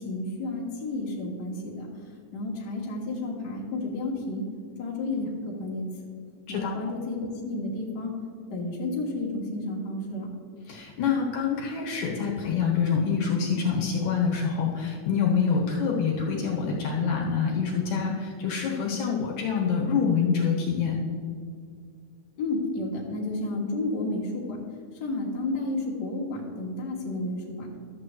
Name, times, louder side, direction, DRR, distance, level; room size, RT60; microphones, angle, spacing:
voice 1, 0.0-1.9 2.3-4.4 4.8-5.9 6.5-8.2 8.5-10.3 22.4-24.6 25.0-27.7, left 2 dB, 45° left, -4 dB, 1.6 m, -31 dB
voice 2, 10.7-21.0, left 6 dB, 70° left, -2 dB, 2.5 m, -26 dB
12.5 x 7.5 x 3.1 m, 2.1 s
omnidirectional pair, 3.7 m